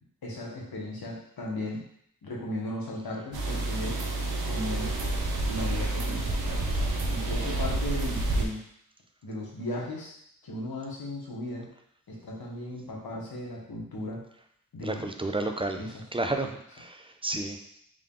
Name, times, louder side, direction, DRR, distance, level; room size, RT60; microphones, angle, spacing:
voice 1, 0.2-1.8 2.2-4.0 4.4-4.9 5.5-8.6 9.2-10.1 10.4-11.7 12.1-14.2 14.7-15.1 15.8-16.0, left 1 dB, 80° left, -2 dB, 1.0 m, -36 dB
sound 1, 3.3-8.5, right 2 dB, 85° right, 0.6 m, -29 dB
voice 2, 14.8-15.8 16.1-17.8, right 2 dB, 15° right, 5 dB, 0.3 m, -32 dB
3.7 x 2.2 x 3.6 m, 0.71 s
cardioid pair, 45°, 36 cm